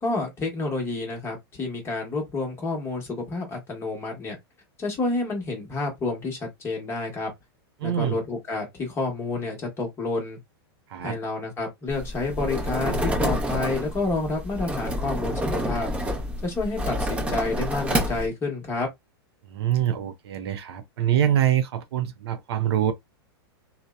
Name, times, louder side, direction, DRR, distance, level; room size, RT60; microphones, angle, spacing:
voice 1, 0.0-4.4 4.8-7.3 7.8-10.4 11.0-15.9 16.4-18.9, left 3 dB, 20° left, 0.9 m, -29 dB
voice 2, 7.8-8.2 10.9-11.2 19.5-22.9, right 10 dB, 70° right, 0.5 m, -24 dB
sound 1, 11.9-18.3, equal, 10° right, 0.6 m, -28 dB
2.7 x 2.0 x 2.2 m
supercardioid pair, 145°, 14 cm